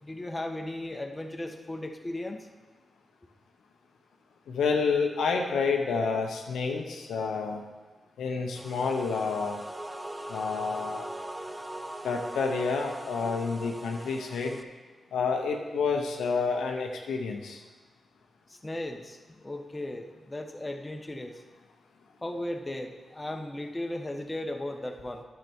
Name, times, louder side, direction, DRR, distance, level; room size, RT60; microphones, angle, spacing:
voice 1, 0.0-2.5 18.5-21.4 22.2-25.2, left 1 dB, 25° left, 4 dB, 1.2 m, -36 dB
voice 2, 4.5-7.6 8.2-9.6 10.3-11.0 12.0-14.6 15.1-17.6, left 5 dB, 85° left, 2 dB, 0.8 m, -29 dB
sound 1, 8.5-14.6, right 1 dB, 15° right, 0.7 m, -40 dB
10.0 x 6.7 x 4.6 m, 1.3 s
supercardioid pair, 40°, 0 cm